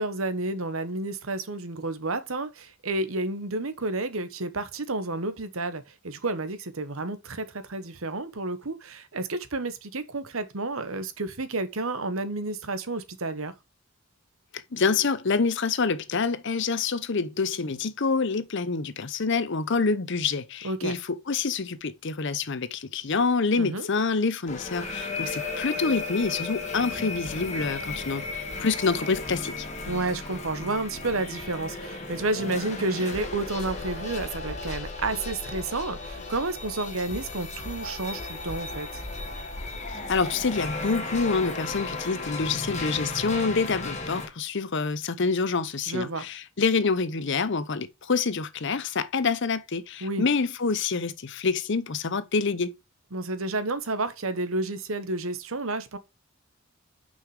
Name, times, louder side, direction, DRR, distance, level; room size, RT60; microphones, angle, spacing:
voice 1, 0.0-13.5 20.6-20.9 23.6-23.9 29.9-38.9 45.9-46.3 50.0-50.3 53.1-56.0, right 2 dB, 80° right, 1.1 m, -31 dB
voice 2, 14.7-28.2 28.6-29.7 40.1-52.7, left 4 dB, 60° left, 0.7 m, -27 dB
sound 1, 24.5-44.3, left 3 dB, 35° left, 1.6 m, -35 dB
6.3 x 5.6 x 4.8 m
head